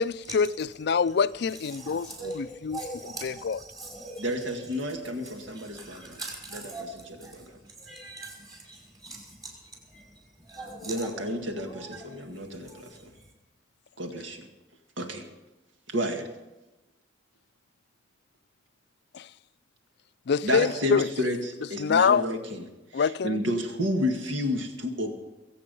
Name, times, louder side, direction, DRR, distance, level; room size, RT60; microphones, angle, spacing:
voice 1, 0.0-2.1 2.4-2.8 3.2-3.6 19.1-19.3 20.3-21.1 21.8-22.2 22.9-23.4, left 6 dB, 60° left, 0.4 m, -25 dB
voice 2, 0.8-1.1 1.5-13.3, right 2 dB, 20° right, 5.0 m, -43 dB
voice 3, 4.2-6.2 7.3-7.5 10.8-12.9 14.0-14.5 15.0-15.2 15.9-16.3 20.4-22.6 22.9-25.1, equal, 85° right, 1.8 m, -30 dB
23.0 x 8.4 x 5.4 m
head